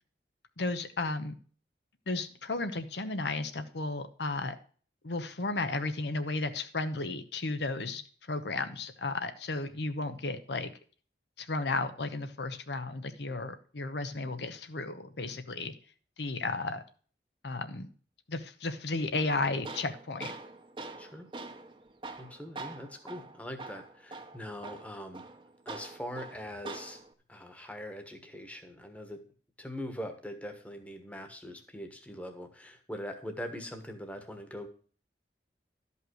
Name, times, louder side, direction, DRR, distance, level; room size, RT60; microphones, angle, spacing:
voice 1, 0.6-1.3 2.1-4.6 5.0-8.0 8.3-10.7 11.4-15.7 16.2-16.8 17.4-17.9 18.3-20.3, left 3 dB, 80° left, 9 dB, 1.0 m, -34 dB
Tools, 19.1-27.1, right 3 dB, 30° right, 0.9 m, -45 dB
voice 2, 22.2-25.2 25.6-27.0 27.3-29.2 29.6-34.7, equal, 10° left, 6 dB, 1.3 m, -42 dB
12.5 x 5.6 x 6.3 m, 0.42 s
head